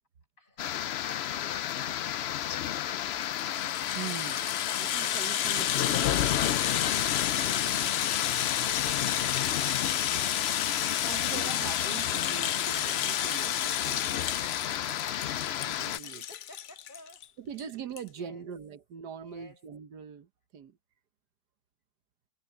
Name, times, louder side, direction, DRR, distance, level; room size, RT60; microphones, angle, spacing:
voice 1, 0.4-2.5 16.0-17.7 18.0-18.5 19.2-19.7, left 2 dB, 30° left, 6.2 m, -55 dB
sound 1, 0.6-16.0, left 11 dB, 85° left, 0.5 m, -31 dB
Rattle (instrument), 3.1-17.2 17.6-17.7 18.0-18.1, left 10 dB, 60° left, 0.9 m, -32 dB
voice 2, 3.9-4.4 4.8-6.5 7.4-7.9 8.1-8.7 8.9-9.1 11.1-14.3 15.6-16.2 17.4-20.8, right 8 dB, 85° right, 1.7 m, -43 dB
omnidirectional pair, 1.7 m